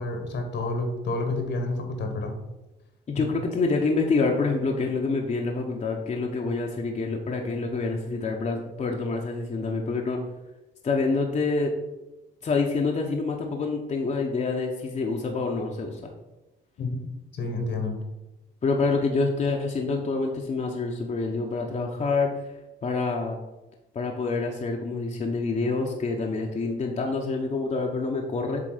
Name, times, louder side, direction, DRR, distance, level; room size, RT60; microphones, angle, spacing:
voice 1, 0.0-2.4 16.8-17.1 17.3-18.0, left 2 dB, 65° left, 4 dB, 1.4 m, -29 dB
voice 2, 3.1-10.2 10.8-11.7 12.4-16.1 18.6-22.5 22.8-23.4 23.9-28.6, left 3 dB, 35° left, 1 dB, 0.9 m, -27 dB
7.8 x 3.4 x 4.9 m, 1.0 s
cardioid pair, 90°, 20 cm